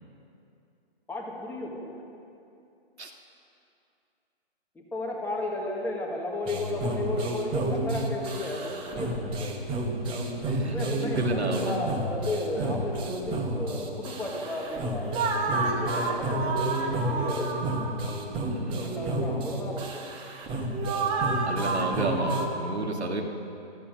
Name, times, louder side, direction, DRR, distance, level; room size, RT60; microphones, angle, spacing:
voice 1, 1.1-2.1 4.7-9.5 10.6-15.1 15.4-17.8 18.8-20.1, left 1 dB, 5° left, -3 dB, 1.6 m, -34 dB
sound 1, 6.5-22.5, right 2 dB, 15° right, 1.2 m, -30 dB
voice 2, 10.5-11.7 12.5-12.8 18.5-19.1 21.5-23.2, right 3 dB, 80° right, 2 dB, 2.2 m, -32 dB
15.5 x 13.5 x 6.5 m, 2.7 s
figure-of-eight pair, 140°, 32 cm